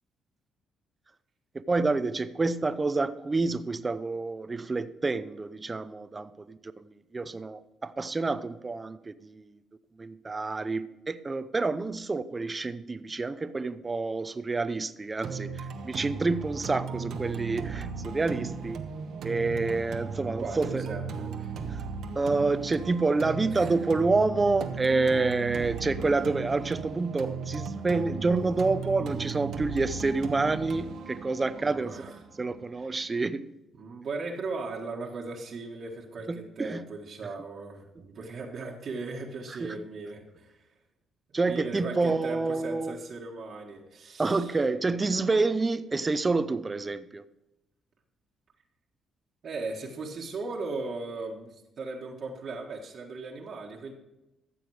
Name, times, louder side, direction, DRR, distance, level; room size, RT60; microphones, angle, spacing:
voice 1, 1.7-9.6 10.0-18.8 19.2-20.8 21.7-21.8 22.1-32.0 32.4-33.4 36.3-36.8 39.6-39.8 41.3-43.0 44.2-47.2, right 3 dB, 25° right, 0.7 m, -28 dB
sound 1, 15.2-33.2, right 5 dB, 75° right, 1.1 m, -37 dB
voice 2, 20.4-21.5 23.5-23.8 31.6-32.1 32.5-32.9 33.8-40.5 41.4-44.6 49.4-53.9, right 3 dB, 55° right, 1.6 m, -38 dB
14.0 x 7.1 x 4.8 m
cardioid pair, 90°, 0 cm